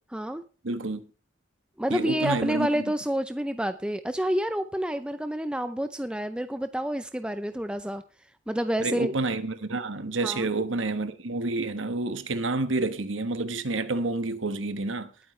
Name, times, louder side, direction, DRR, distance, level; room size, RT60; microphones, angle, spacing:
voice 1, 0.1-0.4 1.8-8.0 8.5-9.1 10.2-10.5, right 1 dB, 5° right, 0.5 m, -28 dB
voice 2, 0.6-1.0 1.9-2.8 8.8-15.1, right 2 dB, 90° right, 1.3 m, -29 dB
20.0 x 9.1 x 3.3 m
head